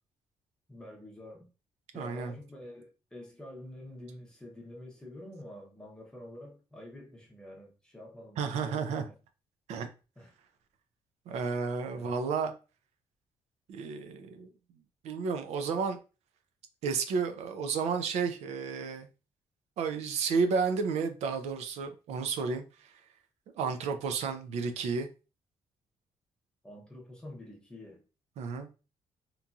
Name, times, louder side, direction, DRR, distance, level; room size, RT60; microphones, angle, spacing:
voice 1, 0.7-1.5 1.9-9.2 10.2-10.3 11.9-12.2 26.6-28.0, left 1 dB, 5° left, 0.7 m, -48 dB
voice 2, 1.9-2.3 8.4-9.1 9.7-9.9 11.3-12.5 13.7-14.5 15.0-16.0 16.8-19.1 19.8-22.9 23.6-25.1 28.4-28.7, right 5 dB, 80° right, 0.4 m, -32 dB
2.9 x 2.6 x 2.3 m
cardioid pair, 155°, 11 cm